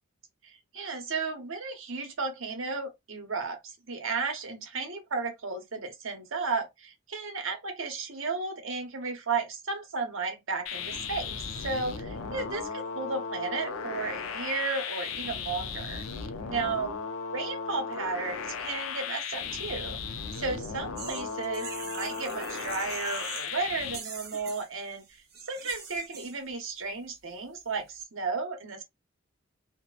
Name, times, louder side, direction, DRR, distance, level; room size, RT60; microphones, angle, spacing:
voice 1, 0.4-16.0 16.5-16.9 17.3-20.0 20.3-28.8, right 4 dB, 75° right, 0.9 m, -34 dB
sound 1, 10.7-24.0, left 5 dB, 75° left, 0.4 m, -36 dB
sound 2, 21.0-23.6 23.8-26.4, right 5 dB, 50° right, 0.8 m, -43 dB
2.8 x 2.1 x 2.3 m
head